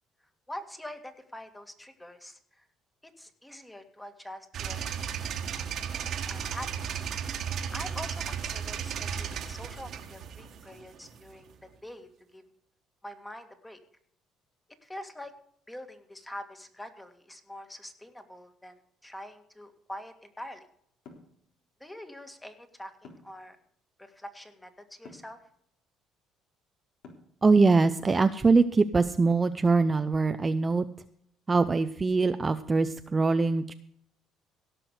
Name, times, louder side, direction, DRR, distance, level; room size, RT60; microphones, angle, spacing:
voice 1, 0.5-2.6 3.0-4.9 5.5-7.0 7.7-12.4 13.0-13.8 14.8-15.3 15.7-20.6 21.8-23.6 24.0-25.4, left 1 dB, 10° left, 7 dB, 2.0 m, -45 dB
sound 1, 4.5-11.5, right 7 dB, 60° right, 1.6 m, -35 dB
sound 2, 21.1-21.3 23.0-23.4 25.0-25.3 27.0-27.4, left 4 dB, 70° left, 3.7 m, -49 dB
voice 2, 27.4-30.9 31.5-33.7, right 4 dB, 25° right, 9 dB, 0.6 m, -23 dB
17.0 x 6.1 x 6.5 m, 0.68 s
cardioid pair, 95°, 0 cm